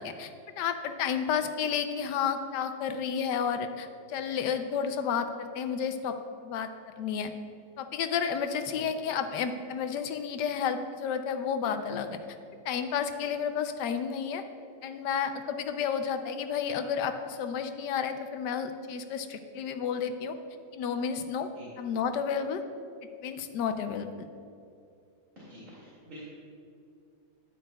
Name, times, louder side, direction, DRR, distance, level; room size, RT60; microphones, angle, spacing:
voice 1, 0.0-6.7 7.0-7.3 7.8-12.2 12.6-14.4 14.8-20.4 20.7-21.5 21.8-22.6 23.2-24.3, left 7 dB, 75° left, 8 dB, 1.2 m, -31 dB
voice 2, 8.7-9.1 21.5-21.7 25.4-26.2, equal, 45° right, -8 dB, 2.5 m, -48 dB
12.5 x 10.0 x 2.2 m, 2.4 s
omnidirectional pair, 2.0 m